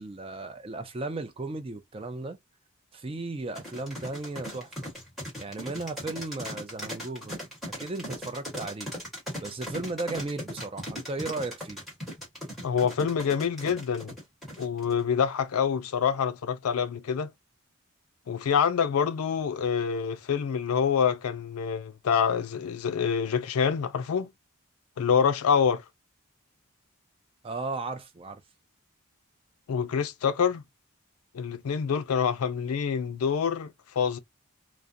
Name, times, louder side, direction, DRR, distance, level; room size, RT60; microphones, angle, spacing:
voice 1, 0.0-2.4 2.9-4.9 5.4-7.4 7.8-8.9 9.4-11.8 27.4-28.4, right 3 dB, 25° right, 0.3 m, -35 dB
sound 1, 3.5-15.0, equal, ahead, 1.1 m, -38 dB
voice 2, 12.6-14.2 14.6-17.3 18.3-24.3 25.0-25.8 29.7-30.6 31.3-34.2, left 7 dB, 85° left, 0.4 m, -26 dB
2.4 x 2.1 x 2.5 m
head